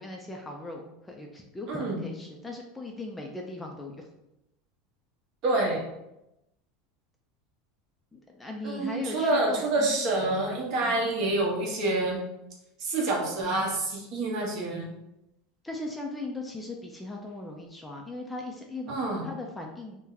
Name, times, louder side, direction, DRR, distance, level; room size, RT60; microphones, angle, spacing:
voice 1, 0.0-4.1 8.1-10.0 10.8-11.1 15.6-18.9 19.2-20.0, left 2 dB, 10° left, 1 dB, 0.3 m, -38 dB
voice 2, 1.7-2.1 5.4-5.8 8.6-12.2 12.8-14.9 18.9-19.2, right 2 dB, 50° right, -2 dB, 1.0 m, -27 dB
2.7 x 2.1 x 3.8 m, 0.89 s
supercardioid pair, 140°, 0 cm